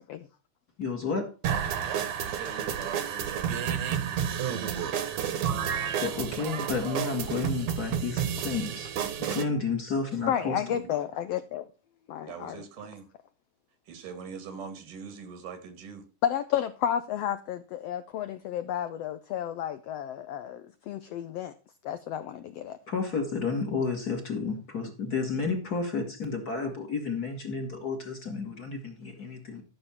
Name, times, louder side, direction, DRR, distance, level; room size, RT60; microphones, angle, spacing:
voice 1, 0.8-1.3 5.6-8.9 9.2-10.8 22.9-29.6, left 4 dB, 35° left, 1.9 m, -31 dB
sound 1, 1.4-9.4, right 8 dB, 65° right, 2.3 m, -30 dB
voice 2, 2.2-4.0 10.2-10.5 10.8-10.9 12.2-13.1 13.9-16.0, right 6 dB, 85° right, 3.6 m, -43 dB
voice 3, 10.3-11.7 12.1-12.6 16.2-21.5 21.8-22.8, left 10 dB, 85° left, 1.4 m, -32 dB
13.5 x 6.7 x 4.3 m
omnidirectional pair, 3.6 m